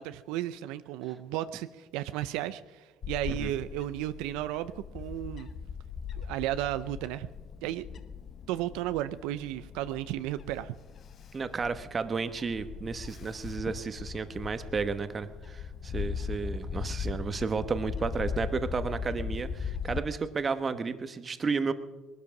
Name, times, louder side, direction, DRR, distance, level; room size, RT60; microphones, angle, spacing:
voice 1, 0.0-5.5 6.1-7.3 7.6-7.8 8.5-10.7, right 14 dB, 85° right, 13 dB, 0.5 m, -34 dB
Bird / Wind, 3.0-20.0, left 6 dB, 45° left, 0.9 m, -39 dB
voice 2, 11.3-21.7, right 5 dB, 30° right, 11 dB, 1.1 m, -32 dB
19.5 x 12.5 x 5.9 m, 1.2 s
cardioid pair, 105°, 0 cm